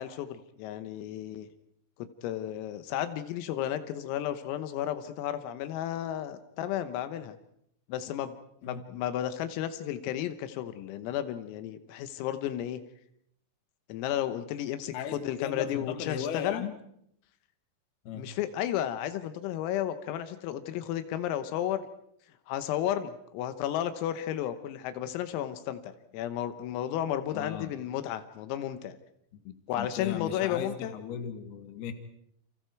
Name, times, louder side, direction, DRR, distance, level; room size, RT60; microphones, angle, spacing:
voice 1, 0.0-1.5 2.0-7.4 7.9-8.3 8.6-12.8 13.9-16.6 18.2-21.9 22.5-29.0 29.7-30.9, left 11 dB, 85° left, 10 dB, 3.8 m, -33 dB
voice 2, 14.9-16.7 18.0-18.3 27.3-27.7 29.3-31.9, left 8 dB, 60° left, 7 dB, 3.3 m, -37 dB
29.5 x 27.5 x 4.7 m, 0.72 s
omnidirectional pair, 5.9 m